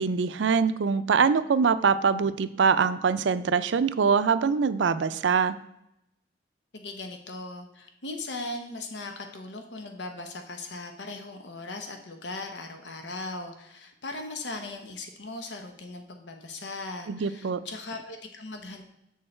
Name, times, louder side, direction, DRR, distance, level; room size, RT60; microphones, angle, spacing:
voice 1, 0.0-5.6 17.1-17.6, right 5 dB, 90° right, 13 dB, 0.4 m, -23 dB
voice 2, 6.7-18.8, left 2 dB, 80° left, 5 dB, 0.9 m, -38 dB
7.1 x 6.5 x 4.3 m, 0.83 s
head